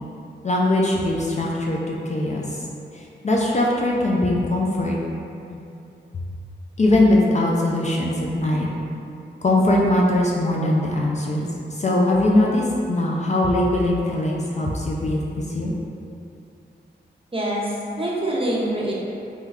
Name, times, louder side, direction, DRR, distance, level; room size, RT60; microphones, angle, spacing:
voice 1, 0.4-2.6 2.9-5.0 5.5-5.6 6.8-8.7 9.4-11.4 11.7-15.7, left 1 dB, 35° left, -3 dB, 0.4 m, -21 dB
voice 2, 17.3-18.9, right 1 dB, 30° right, -5 dB, 0.8 m, -25 dB
3.1 x 2.3 x 3.4 m, 2.7 s
cardioid pair, 50°, 20 cm